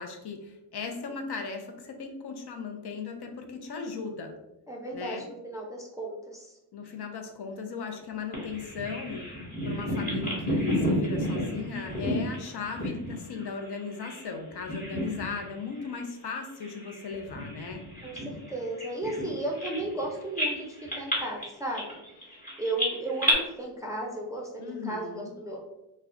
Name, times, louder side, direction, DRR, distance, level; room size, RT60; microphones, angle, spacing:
voice 1, 0.0-4.3 4.9-5.3 6.7-9.2 9.6-17.8 24.6-25.3, left 5 dB, 60° left, 4 dB, 0.5 m, -37 dB
voice 2, 4.7-6.6 18.0-20.7 20.9-22.0 22.6-25.6, right 2 dB, 10° right, -2 dB, 0.4 m, -34 dB
Bird vocalization bird call bird song, 8.3-14.3 14.6-15.5 15.8-16.0 16.6-20.0 20.4-23.3, equal, 20° left, 1.1 m, -31 dB
2.3 x 2.1 x 3.5 m, 0.90 s
wide cardioid pair, 125°, 44 cm